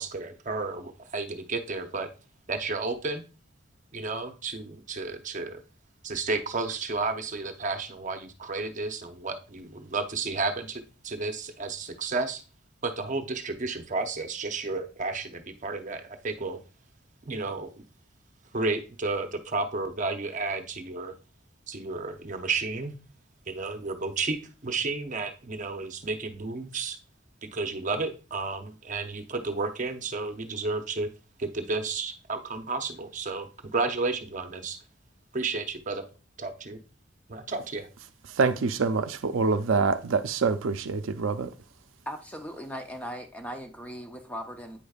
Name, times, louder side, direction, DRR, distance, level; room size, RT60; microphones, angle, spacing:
voice 1, 0.0-2.1 2.5-3.2 3.9-5.6 6.0-12.4 12.8-16.6 17.2-17.8 18.5-21.1 21.7-22.9 23.5-24.4 24.6-27.0 27.5-31.1 31.4-34.8 35.3-36.0 36.4-36.8 37.3-37.9, right 3 dB, 40° right, 0.7 m, -32 dB
voice 2, 38.4-41.5, right 4 dB, 75° right, 0.5 m, -25 dB
voice 3, 42.1-44.8, equal, 5° left, 0.5 m, -38 dB
8.6 x 5.1 x 2.3 m
head